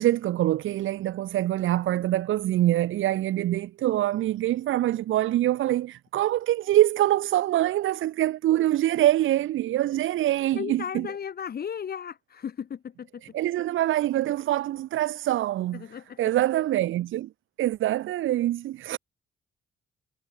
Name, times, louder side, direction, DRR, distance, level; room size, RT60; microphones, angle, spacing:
voice 1, 0.0-11.1 13.2-17.3 17.6-19.0, right 14 dB, 80° right, 2.2 m, -25 dB
voice 2, 10.5-13.2 15.8-16.2 18.9-19.0, left 8 dB, 50° left, 2.5 m, -35 dB
cardioid pair, 90°, 20 cm